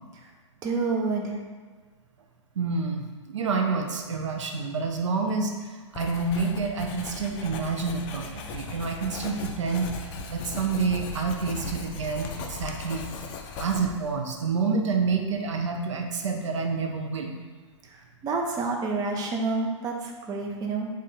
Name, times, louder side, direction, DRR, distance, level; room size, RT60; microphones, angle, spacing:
voice 1, 0.6-1.4 17.9-20.9, right 3 dB, 25° right, 1 dB, 0.6 m, -28 dB
voice 2, 2.6-9.9 10.3-13.1 13.6-17.3, right 4 dB, 70° right, 2 dB, 0.5 m, -28 dB
Writing, 5.9-14.1, left 4 dB, 30° left, 0.4 m, -38 dB
3.6 x 2.5 x 4.2 m, 1.4 s
figure-of-eight pair, 105°, 16 cm